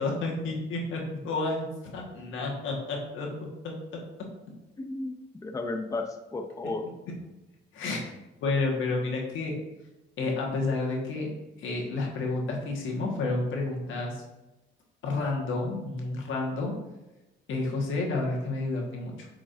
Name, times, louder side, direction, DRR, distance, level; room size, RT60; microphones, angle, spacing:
voice 1, 0.0-1.7 1.9-3.3 3.6-3.7 7.7-8.0 8.4-9.6 10.2-11.3 11.6-14.2 15.0-16.7 17.5-19.3, left 3 dB, 80° left, -1 dB, 1.6 m, -30 dB
voice 2, 4.8-6.9, left 2 dB, 15° left, 5 dB, 0.6 m, -34 dB
8.3 x 4.9 x 2.6 m, 1.0 s
cardioid pair, 90°, 20 cm